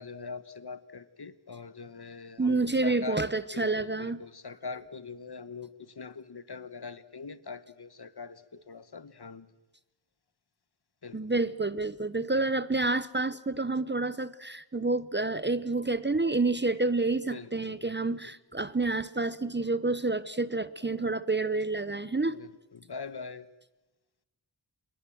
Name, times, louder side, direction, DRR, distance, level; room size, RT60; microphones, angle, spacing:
voice 1, 0.0-3.2 3.5-9.5 11.0-11.2 17.2-18.3 22.3-23.5, left 4 dB, 60° left, 14 dB, 1.3 m, -42 dB
voice 2, 2.4-4.2 11.1-22.4, right 3 dB, 25° right, 16 dB, 0.8 m, -29 dB
26.5 x 21.5 x 7.7 m, 1.0 s
wide cardioid pair, 60°, 45 cm